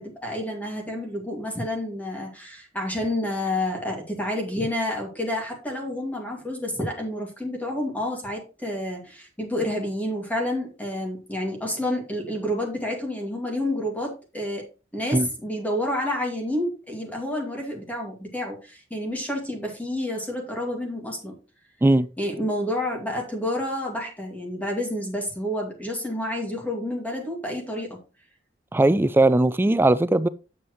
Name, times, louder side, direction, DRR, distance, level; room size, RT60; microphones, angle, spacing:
voice 1, 0.0-14.7 14.9-21.3 22.2-28.0, left 1 dB, 10° left, 2.2 m, -29 dB
voice 2, 28.7-30.3, right 2 dB, 10° right, 0.4 m, -19 dB
8.8 x 7.1 x 3.1 m
head